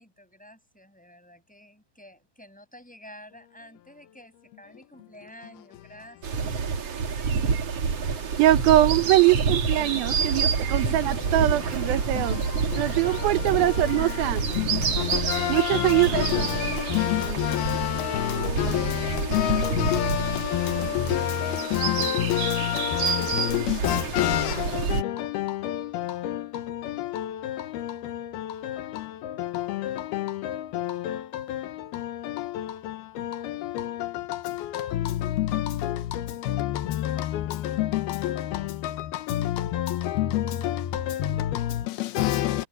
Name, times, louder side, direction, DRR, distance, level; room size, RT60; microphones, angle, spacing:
voice 1, 0.0-6.5 9.6-10.5 10.8-11.6, equal, ahead, 5.6 m, -49 dB
sound 1, 6.2-25.0, right 6 dB, 45° right, 2.6 m, -28 dB
voice 2, 7.3-8.4 9.8-10.9 11.4-42.6, left 13 dB, 85° left, 3.0 m, -29 dB
voice 3, 8.4-12.4 12.7-14.4 15.5-16.5, right 15 dB, 80° right, 2.6 m, -22 dB
omnidirectional pair, 4.4 m